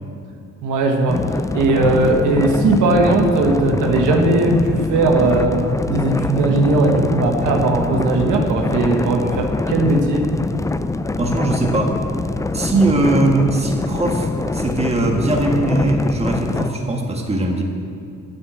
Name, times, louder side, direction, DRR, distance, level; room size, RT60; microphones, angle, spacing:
voice 1, 0.6-1.2 1.5-5.6 5.9-10.3, right 2 dB, 85° right, 2 dB, 1.3 m, -18 dB
sound 1, 1.1-16.7, left 2 dB, 10° left, 0.4 m, -23 dB
voice 2, 11.2-11.9 12.5-17.6, right 2 dB, 20° right, 1 dB, 1.7 m, -20 dB
9.9 x 7.6 x 7.6 m, 2.4 s
cardioid pair, 90°, 30 cm